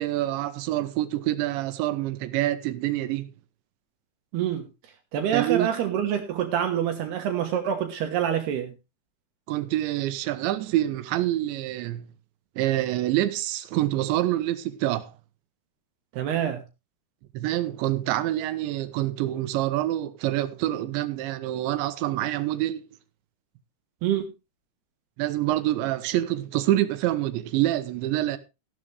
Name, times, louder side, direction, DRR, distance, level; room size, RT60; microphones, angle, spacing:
voice 1, 0.0-3.3 5.3-5.7 9.5-12.1 12.6-15.1 17.3-22.8 25.2-28.4, right 14 dB, 90° right, 3.3 m, -26 dB
voice 2, 4.3-4.7 5.1-8.7 16.1-16.6 24.0-24.3, right 9 dB, 70° right, 3.2 m, -26 dB
15.0 x 11.0 x 3.3 m
omnidirectional pair, 5.0 m